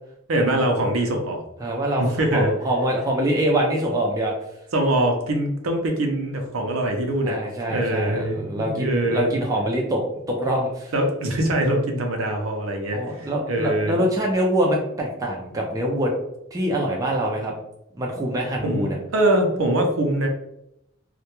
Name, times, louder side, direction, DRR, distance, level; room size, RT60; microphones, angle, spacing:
voice 1, 0.3-1.4 2.0-2.5 4.7-7.4 7.7-9.3 10.9-14.0 18.6-20.3, right 1 dB, 85° right, 3 dB, 0.5 m, -23 dB
voice 2, 1.6-4.3 7.2-10.0 10.3-10.9 12.9-16.1 16.5-17.5 17.9-19.0, right 1 dB, 15° right, -1 dB, 0.4 m, -24 dB
2.2 x 2.1 x 2.9 m, 0.79 s
head